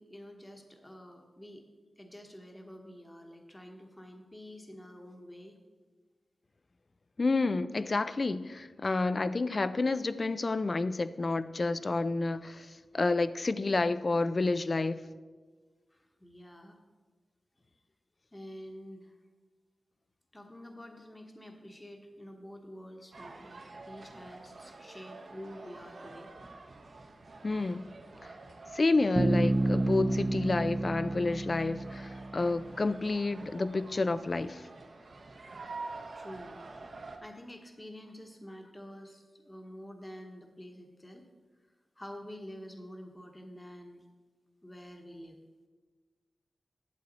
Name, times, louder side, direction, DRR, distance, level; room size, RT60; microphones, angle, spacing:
voice 1, 0.0-1.7 2.0-5.6 8.8-8.9 15.9-16.8 18.3-19.1 20.3-26.3 36.1-36.6 37.2-41.2 42.0-44.1 44.6-45.4, equal, 15° left, 3 dB, 1.1 m, -48 dB
voice 2, 7.2-15.0 27.4-27.9 28.7-34.6, left 3 dB, 45° left, 14 dB, 0.4 m, -29 dB
sound 1, 23.1-37.2, right 3 dB, 65° right, 1.0 m, -48 dB
Bass guitar, 29.1-32.9, right 2 dB, 35° right, 0.5 m, -30 dB
11.5 x 7.8 x 4.0 m, 1.4 s
wide cardioid pair, 70°, 0 cm